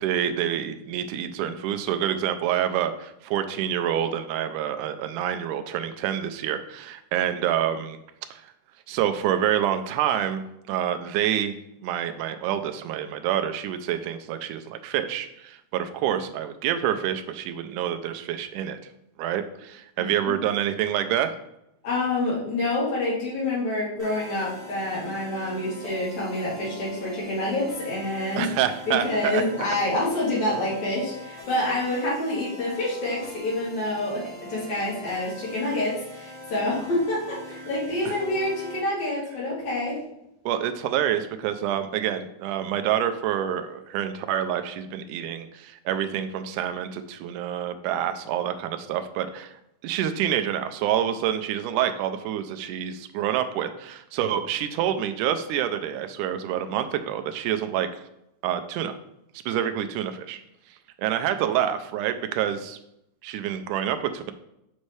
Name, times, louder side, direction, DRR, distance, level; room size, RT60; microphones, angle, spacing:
voice 1, 0.0-8.0 8.3-8.4 8.9-11.6 11.8-18.8 19.2-21.4 28.4-29.4 38.1-38.2 40.5-49.5 49.8-57.9 58.4-59.0 59.5-60.4 61.0-62.8 63.2-64.3, right 10 dB, 85° right, 9 dB, 2.1 m, -27 dB
voice 2, 21.8-28.5 28.9-34.2 34.5-39.9, left 1 dB, 65° left, -7 dB, 4.1 m, -27 dB
sound 1, 24.0-38.8, left 1 dB, 30° right, 2.0 m, -42 dB
7.1 x 5.3 x 3.2 m, 0.83 s
omnidirectional pair, 3.5 m